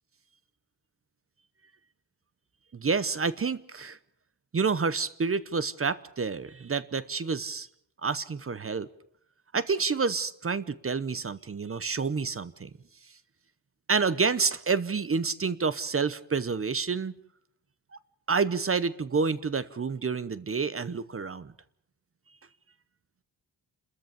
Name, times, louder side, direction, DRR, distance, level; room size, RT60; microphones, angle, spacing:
voice 1, 2.7-4.0 4.5-7.7 8.0-8.9 9.5-12.7 13.9-17.1 18.3-21.5, right 5 dB, 30° right, 16 dB, 0.8 m, -28 dB
30.0 x 14.0 x 6.9 m, 0.69 s
wide cardioid pair, 125°, 45 cm